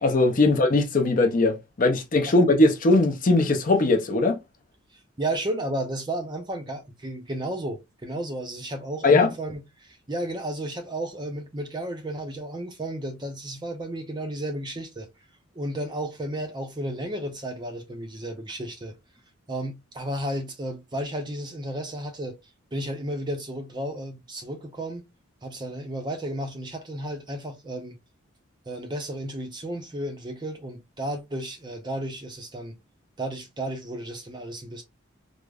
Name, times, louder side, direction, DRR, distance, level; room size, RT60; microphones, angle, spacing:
voice 1, 0.0-4.4 9.0-9.3, left 2 dB, 40° left, 0.5 m, -20 dB
voice 2, 5.2-15.1 15.5-19.0 19.5-22.4 22.7-25.1 25.4-28.0 28.7-32.8 33.2-34.8, right 1 dB, 20° right, 0.5 m, -33 dB
4.9 x 2.0 x 2.3 m
head